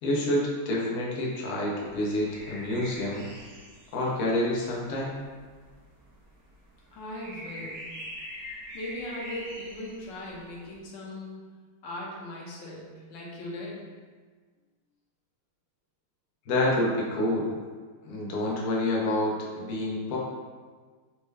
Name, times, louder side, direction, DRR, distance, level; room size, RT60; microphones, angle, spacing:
voice 1, 0.0-3.3 3.9-5.2 16.5-17.6 18.0-20.2, left 1 dB, 85° left, -4 dB, 0.7 m, -28 dB
sound 1, 1.8-10.8, equal, 75° right, 0.9 m, -44 dB
voice 2, 6.9-7.9 8.7-11.4 11.8-13.8, left 1 dB, 70° left, -3 dB, 1.2 m, -39 dB
4.3 x 2.2 x 3.2 m, 1.5 s
omnidirectional pair, 2.4 m